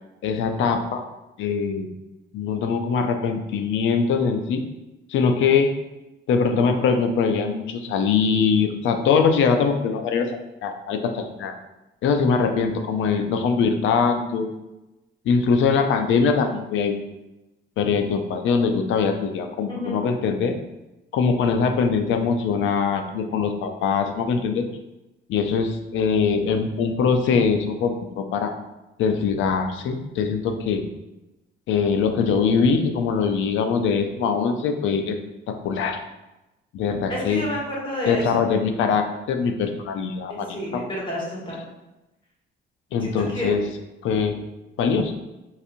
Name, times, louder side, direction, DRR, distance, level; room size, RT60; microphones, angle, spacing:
voice 1, 0.2-1.0 1.4-1.9 2.3-4.6 5.1-5.7 6.3-11.5 12.0-14.5 15.2-17.0 17.8-20.6 21.1-24.6 25.3-28.5 29.0-30.8 31.7-35.2 35.5-36.0 36.7-37.5 38.1-40.5 40.7-40.8 42.9-43.6 44.0-44.4 44.8-45.1, left 5 dB, 75° left, 6 dB, 0.5 m, -22 dB
voice 2, 19.7-20.0 37.1-38.3 40.3-41.6 43.0-43.5, left 1 dB, 25° left, -5 dB, 1.5 m, -30 dB
4.0 x 2.6 x 2.5 m, 0.98 s
cardioid pair, 90°, 20 cm